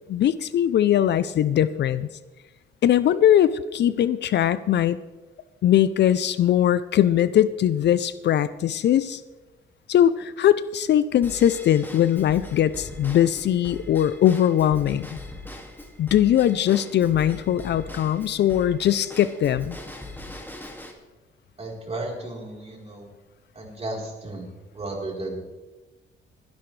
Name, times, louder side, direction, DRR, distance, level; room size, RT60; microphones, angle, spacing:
voice 1, 0.1-2.1 2.8-5.0 5.6-9.2 9.9-15.2 16.0-19.8, left 11 dB, 60° left, 15 dB, 0.5 m, -21 dB
Drum kit / Drum / Bell, 11.2-20.9, left 1 dB, 10° left, 2.1 m, -41 dB
voice 2, 21.6-23.1 23.5-25.4, right 2 dB, 30° right, -1 dB, 3.9 m, -34 dB
21.0 x 10.5 x 3.3 m, 1.1 s
cardioid pair, 90°, 20 cm